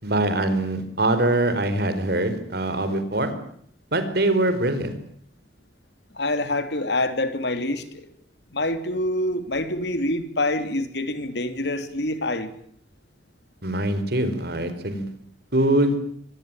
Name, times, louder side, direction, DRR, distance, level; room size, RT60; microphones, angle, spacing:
voice 1, 0.0-3.3 3.9-4.9 13.6-15.1 15.5-16.0, right 1 dB, 60° right, 10 dB, 4.7 m, -23 dB
voice 2, 6.1-8.1 8.5-12.5, left 1 dB, 70° left, 10 dB, 3.1 m, -26 dB
24.5 x 20.5 x 9.0 m, 0.64 s
head